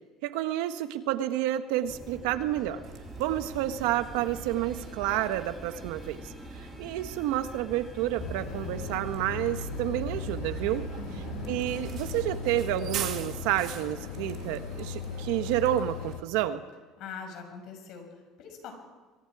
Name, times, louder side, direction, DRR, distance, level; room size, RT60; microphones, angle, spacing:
voice 1, 0.2-2.8 3.2-10.8 11.5-16.6, right 13 dB, 80° right, 9 dB, 1.4 m, -30 dB
sound 1, 1.8-13.6, left 1 dB, 10° left, 3.5 m, -46 dB
Bus, 2.8-16.1, right 8 dB, 55° right, 2.1 m, -42 dB
sound 2, 8.2-16.2, left 7 dB, 80° left, 1.9 m, -38 dB
voice 2, 11.0-11.4 17.0-18.7, left 6 dB, 60° left, 4 dB, 6.2 m, -43 dB
25.5 x 23.0 x 4.9 m, 1.3 s
cardioid pair, 125°, 0 cm